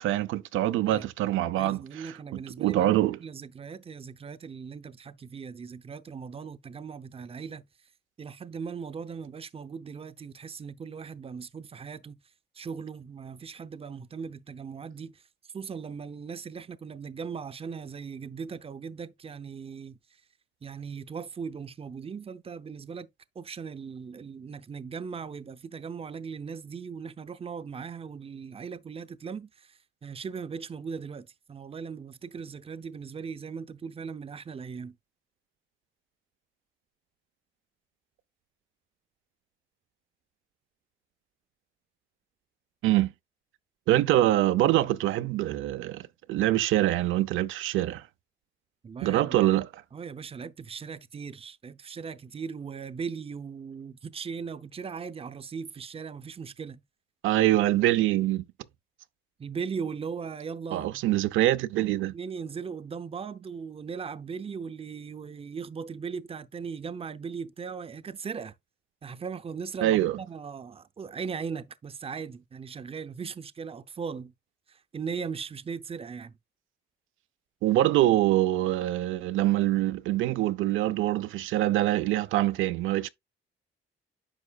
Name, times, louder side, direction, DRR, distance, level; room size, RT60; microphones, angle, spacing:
voice 1, 0.0-3.2 42.8-43.1 43.9-48.0 49.0-49.7 57.2-58.4 60.7-62.1 69.8-70.2 77.6-83.1, right 14 dB, 85° right, 0.7 m, -25 dB
voice 2, 1.6-7.6 8.2-12.2 12.5-15.2 15.5-20.2 20.6-35.0 48.8-49.4 49.9-56.8 59.4-61.0 62.1-68.5 69.0-74.3 74.7-76.4, right 6 dB, 30° right, 0.7 m, -38 dB
9.9 x 6.2 x 2.4 m
cardioid pair, 90°, 20 cm